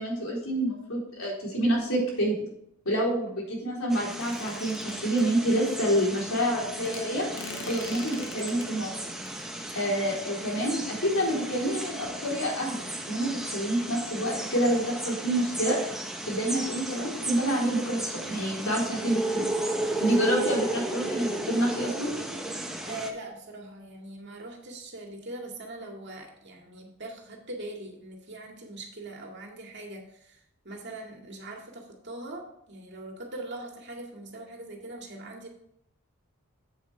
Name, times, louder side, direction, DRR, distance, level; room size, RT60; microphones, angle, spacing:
voice 1, 0.0-2.4 2.9-7.3 7.7-8.9 9.7-11.9 12.2-15.8 16.3-19.7 20.0-22.1, right 1 dB, 80° left, -3 dB, 3.9 m, -28 dB
sound 1, 3.9-23.1, right 1 dB, ahead, 0.9 m, -35 dB
sound 2, 4.2-5.2 6.8-8.7 9.3-9.4, left 3 dB, 60° left, 1.4 m, -42 dB
voice 2, 19.8-20.1 22.8-35.5, right 2 dB, 55° right, 1 dB, 2.1 m, -41 dB
8.7 x 8.0 x 3.4 m, 0.74 s
head